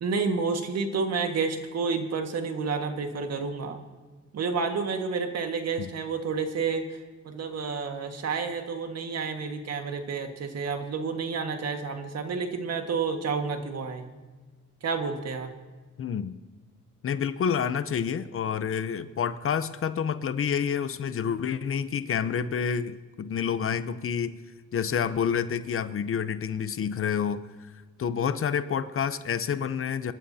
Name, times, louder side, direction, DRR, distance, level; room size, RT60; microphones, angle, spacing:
voice 1, 0.0-3.8 4.3-6.8 7.3-14.1 14.8-15.5, right 5 dB, 55° right, 5 dB, 1.7 m, -30 dB
voice 2, 16.0-16.4 17.0-24.4 24.7-30.1, left 7 dB, 45° left, 13 dB, 0.7 m, -28 dB
25.0 x 12.5 x 2.8 m, 1.3 s
cardioid pair, 90°, 30 cm